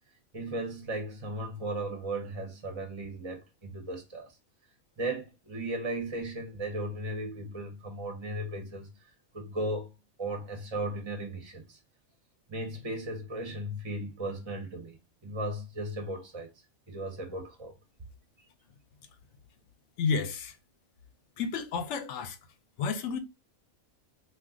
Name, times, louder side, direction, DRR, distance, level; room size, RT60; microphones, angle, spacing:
voice 1, 0.3-4.3 5.0-9.0 9.3-9.9 10.2-11.8 12.5-15.0 15.2-16.5 16.9-17.7, right 1 dB, 30° right, 0.6 m, -36 dB
voice 2, 20.0-20.6 21.4-22.4 22.8-23.2, left 5 dB, 65° left, 0.9 m, -31 dB
2.4 x 2.3 x 3.5 m
omnidirectional pair, 1.4 m